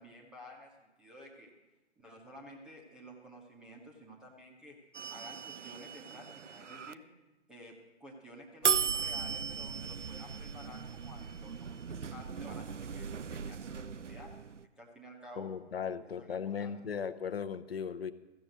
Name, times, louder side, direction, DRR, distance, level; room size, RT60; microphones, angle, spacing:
voice 1, 0.0-1.5 2.0-4.8 5.1-7.1 7.5-14.3 14.8-15.5 16.0-16.8, equal, ahead, -2 dB, 0.6 m, -52 dB
sound 1, 4.9-6.9 8.6-14.7, right 7 dB, 80° right, 0.6 m, -37 dB
voice 2, 15.4-18.1, left 7 dB, 55° left, 12 dB, 0.8 m, -37 dB
14.5 x 6.9 x 7.7 m, 1.1 s
figure-of-eight pair, 135°, 35 cm